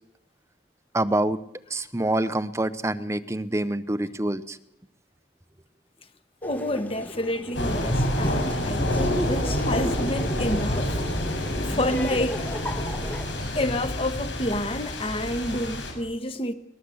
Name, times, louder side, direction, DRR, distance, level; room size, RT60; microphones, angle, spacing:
voice 1, 0.9-1.4 1.7-4.6, right 1 dB, 15° right, 0.8 m, -26 dB
voice 2, 6.4-11.0 11.7-12.5 13.5-16.5, left 1 dB, 30° left, 1.5 m, -29 dB
Laughter, 6.4-13.3, equal, 10° left, 1.8 m, -36 dB
sound 1, 7.5-15.9, left 1 dB, 85° left, 6.6 m, -28 dB
22.5 x 20.5 x 8.0 m
head